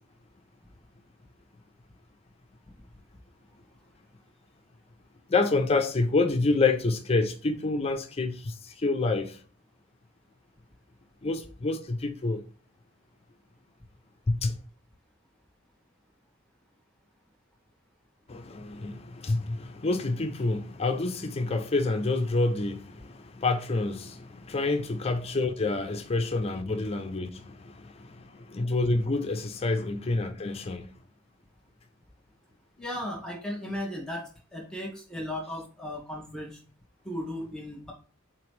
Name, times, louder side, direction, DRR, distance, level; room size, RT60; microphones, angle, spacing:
voice 1, 5.3-9.4 11.2-12.4 14.3-14.6 18.3-30.9, left 3 dB, 30° left, 0.5 m, -28 dB
voice 2, 32.8-36.6 37.0-37.9, left 1 dB, 5° left, 1.1 m, -36 dB
4.4 x 2.9 x 3.2 m
head